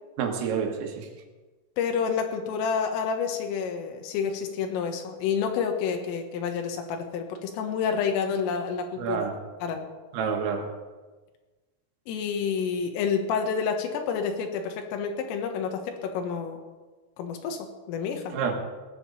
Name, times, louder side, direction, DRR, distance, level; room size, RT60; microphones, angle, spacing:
voice 1, 0.2-1.1 9.0-9.3 10.1-10.7 18.3-18.6, right 6 dB, 85° right, 3 dB, 4.3 m, -28 dB
voice 2, 1.8-9.3 9.6-9.9 12.1-16.6 17.2-18.4, left 6 dB, 90° left, 4 dB, 3.9 m, -29 dB
19.0 x 9.0 x 7.0 m, 1.3 s
omnidirectional pair, 5.8 m